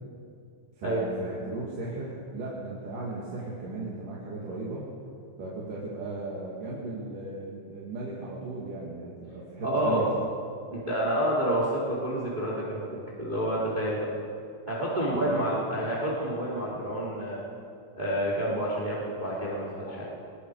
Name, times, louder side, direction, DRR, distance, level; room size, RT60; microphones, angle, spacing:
voice 1, 0.8-4.8 5.4-10.1 15.1-15.4 15.7-15.9, right 2 dB, 75° right, -5 dB, 4.2 m, -36 dB
voice 2, 9.6-10.0 10.7-14.1 14.7-17.4 17.9-20.0, right 1 dB, 15° right, -6 dB, 3.3 m, -29 dB
25.0 x 21.0 x 5.0 m, 2.5 s
omnidirectional pair, 3.7 m